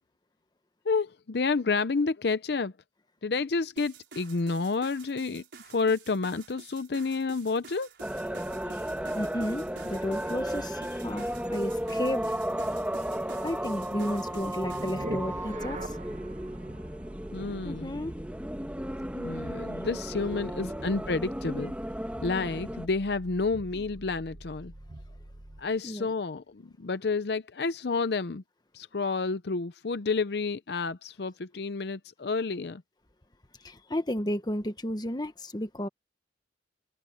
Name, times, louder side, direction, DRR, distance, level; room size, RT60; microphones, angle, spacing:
voice 1, 0.8-2.7 3.2-7.9 17.3-17.9 19.1-21.7 22.2-24.7 25.6-28.4 28.7-32.8, left 4 dB, 65° left, 0.6 m, -30 dB
sound 1, 3.8-15.1, right 5 dB, 75° right, 4.8 m, -50 dB
sound 2, 8.0-22.9, equal, 10° right, 1.8 m, -34 dB
voice 2, 8.6-12.3 13.4-16.0 17.6-18.1 20.6-21.1 25.8-26.1 33.6-35.9, left 1 dB, 25° left, 1.3 m, -33 dB
sound 3, 14.6-25.8, right 1 dB, 45° right, 1.1 m, -44 dB
head